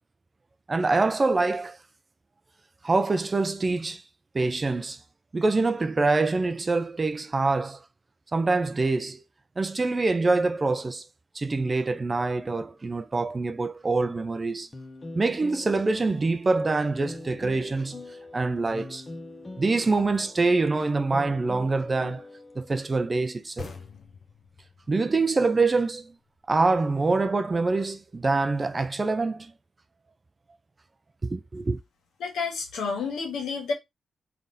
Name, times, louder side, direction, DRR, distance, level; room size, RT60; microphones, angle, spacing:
voice 1, 0.7-1.8 2.8-4.0 4.3-5.0 5.3-7.8 8.3-9.2 9.6-11.0 11.3-14.7 15.1-18.0 18.3-19.0 19.6-22.2 22.6-23.7 24.9-26.1 26.5-29.5 31.2-31.8, right 3 dB, 30° right, 0.4 m, -25 dB
sound 1, 14.7-22.8, left 2 dB, 25° left, 0.7 m, -43 dB
sound 2, 23.6-27.0, left 5 dB, 65° left, 0.9 m, -45 dB
voice 2, 32.2-33.7, left 5 dB, 90° left, 1.5 m, -30 dB
3.7 x 3.4 x 2.6 m
cardioid pair, 100°, 0 cm